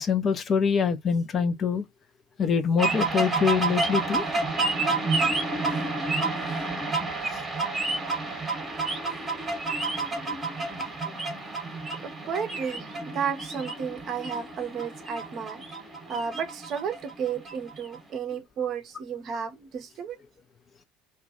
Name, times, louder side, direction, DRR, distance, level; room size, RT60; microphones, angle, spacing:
voice 1, 0.0-1.9 2.4-4.3 8.5-9.1 10.2-10.4 10.8-10.9, left 6 dB, 30° left, 0.4 m, -25 dB
sound 1, 2.8-18.0, right 3 dB, 20° right, 0.9 m, -29 dB
voice 2, 12.0-15.6 16.1-20.2, right 7 dB, 40° right, 0.6 m, -33 dB
2.2 x 2.2 x 2.6 m
figure-of-eight pair, 70°, 0 cm